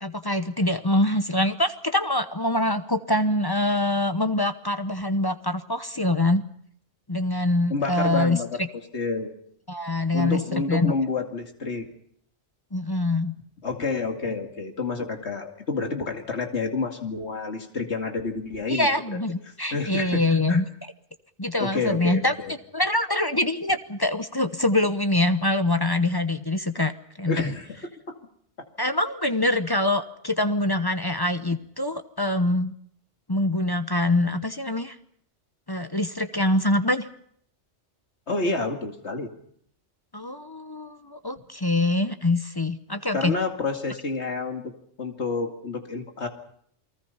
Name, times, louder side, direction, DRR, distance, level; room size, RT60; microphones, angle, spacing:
voice 1, 0.0-6.4 7.1-8.7 9.7-10.9 12.7-13.3 18.7-20.6 21.4-22.3 22.7-26.9 27.2-27.5 28.8-32.7 33.3-35.0 35.7-37.1 40.1-43.3, left 1 dB, 20° left, 9 dB, 0.9 m, -24 dB
voice 2, 7.7-8.6 8.9-9.3 10.1-11.9 13.6-18.9 19.7-20.6 21.6-22.5 27.3-27.8 28.1-28.2 28.6-28.7 38.3-39.3 43.1-44.7 45.0-46.3, left 3 dB, 70° left, 4 dB, 2.6 m, -29 dB
29.0 x 20.0 x 5.6 m, 0.65 s
omnidirectional pair, 1.2 m